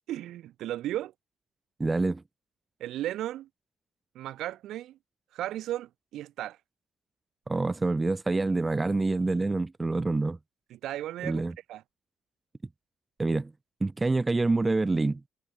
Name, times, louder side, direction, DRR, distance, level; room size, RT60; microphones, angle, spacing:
voice 1, 0.1-1.1 2.8-3.5 4.1-5.0 5.3-6.6 10.7-11.4 11.7-11.8, right 13 dB, 80° right, 3.9 m, -35 dB
voice 2, 1.8-2.2 7.5-10.4 11.2-11.5 13.2-13.5 13.8-15.2, right 3 dB, 20° right, 2.1 m, -26 dB
cardioid pair, 90°, 0 cm